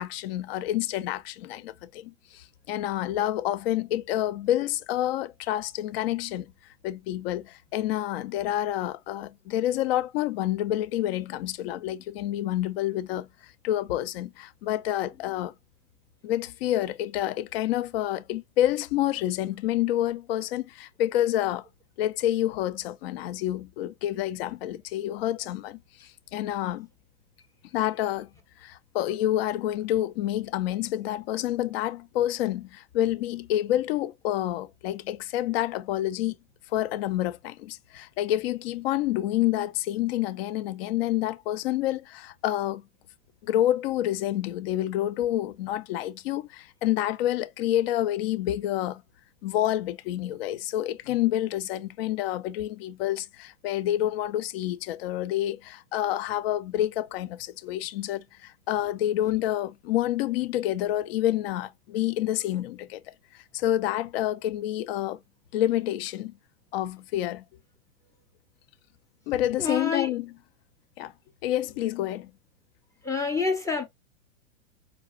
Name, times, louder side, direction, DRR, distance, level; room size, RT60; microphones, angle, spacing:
voice 1, 0.0-6.5 6.8-13.3 13.6-15.5 16.2-21.7 22.0-26.9 27.7-28.3 28.6-36.4 36.7-42.8 43.4-49.0 49.4-63.0 63.5-65.2 65.5-66.3 66.7-67.4 69.3-70.3 71.0-71.1 71.4-72.3, left 13 dB, 50° left, 0.6 m, -28 dB
voice 2, 69.6-70.1 73.0-73.8, left 4 dB, 10° left, 0.6 m, -27 dB
5.0 x 2.3 x 2.2 m
hypercardioid pair, 115°, 40 cm